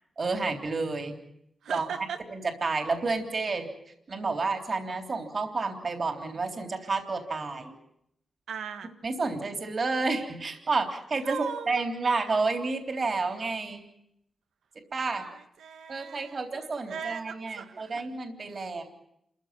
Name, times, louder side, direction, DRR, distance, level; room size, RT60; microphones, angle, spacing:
voice 1, 0.2-1.2 1.7-1.9 2.3-3.7 4.1-7.7 9.0-13.8 14.9-15.3 15.9-18.8, right 3 dB, 55° right, 6 dB, 3.5 m, -30 dB
voice 2, 1.6-2.2 8.5-8.9 11.2-11.8 15.1-18.2 18.6-18.7, right 7 dB, 90° right, 8 dB, 1.7 m, -39 dB
28.0 x 15.0 x 9.0 m, 0.77 s
cardioid pair, 55°, 0 cm